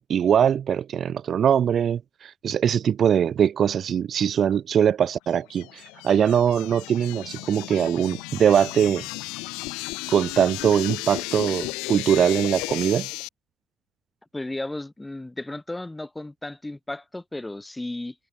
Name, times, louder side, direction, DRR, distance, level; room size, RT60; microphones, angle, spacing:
voice 1, 0.0-9.0 10.1-13.1, right 8 dB, 55° right, 0.6 m, -22 dB
sound 1, 5.3-13.3, left 25 dB, 85° left, 1.7 m, -34 dB
voice 2, 14.3-18.1, left 2 dB, 15° left, 6.1 m, -34 dB
supercardioid pair, 65°, 0 cm